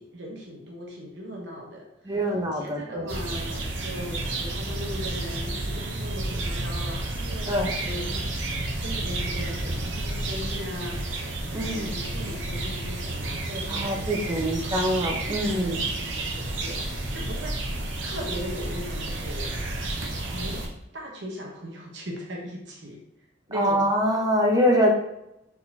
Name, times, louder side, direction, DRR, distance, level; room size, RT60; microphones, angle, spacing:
voice 1, 0.0-11.2 11.6-15.1 15.4-17.5 18.0-19.5 20.3-20.6 20.9-23.0 23.5-23.8, equal, 70° right, -1 dB, 1.1 m, -39 dB
voice 2, 2.1-3.1 7.5-7.7 11.5-11.9 13.7-15.8 23.5-24.9, equal, 20° right, 0 dB, 0.8 m, -24 dB
sound 1, 3.1-20.7, right 2 dB, 90° right, 0.9 m, -31 dB
4.4 x 4.0 x 2.8 m, 0.85 s
head